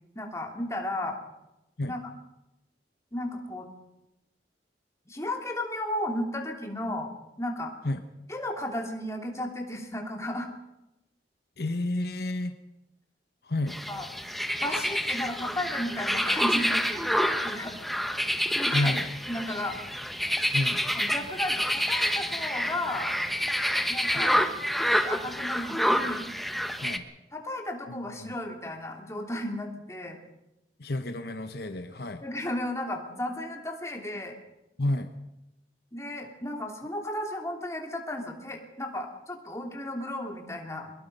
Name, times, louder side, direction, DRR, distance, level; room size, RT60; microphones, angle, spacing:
voice 1, 0.1-1.2 1.9-2.0 3.1-3.7 5.1-7.1 7.4-7.7 8.3-10.5 13.9-14.0 14.6-17.7 18.5-18.9 19.3-19.8 20.9-23.1 23.9-24.4 25.0-26.3 27.3-30.2 32.2-34.3 35.9-40.9, left 1 dB, 15° left, 2 dB, 3.0 m, -34 dB
voice 2, 11.6-12.5 13.4-13.8 18.7-19.1 20.5-20.9 24.1-24.3 26.8-27.1 27.9-28.3 30.8-32.2 34.8-35.1, left 1 dB, 60° left, 8 dB, 1.1 m, -30 dB
sound 1, 13.7-27.0, equal, ahead, 1.1 m, -28 dB
23.0 x 21.0 x 5.5 m, 0.94 s
head